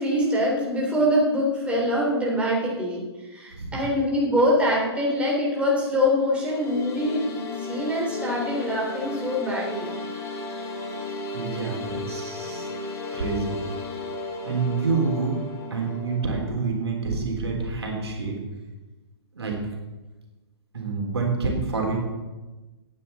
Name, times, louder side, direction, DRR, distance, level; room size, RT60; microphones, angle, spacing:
voice 1, 0.0-3.0 3.3-9.9, equal, 10° right, -4 dB, 3.2 m, -24 dB
sound 1, 6.2-16.4, left 3 dB, 20° left, 1.9 m, -34 dB
voice 2, 11.0-12.7 13.1-13.6 14.4-15.4 15.7-18.4 19.3-19.6 20.7-22.0, right 4 dB, 70° right, 0 dB, 3.3 m, -27 dB
17.0 x 9.3 x 4.1 m, 1.2 s
figure-of-eight pair, 125°, 14 cm